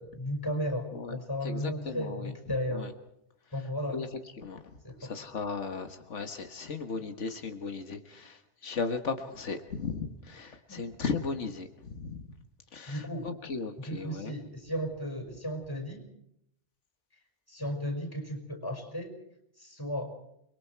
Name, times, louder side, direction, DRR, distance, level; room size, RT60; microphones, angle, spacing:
voice 1, 0.0-2.9 3.5-4.0 4.8-5.1 10.7-10.8 12.9-13.3 13.9-16.0 17.5-19.1 19.6-20.1, equal, 20° left, 4 dB, 5.4 m, -34 dB
voice 2, 0.9-2.9 3.4-12.4 12.7-14.4, left 4 dB, 90° left, 7 dB, 1.8 m, -37 dB
29.5 x 22.5 x 4.6 m, 0.76 s
omnidirectional pair, 1.2 m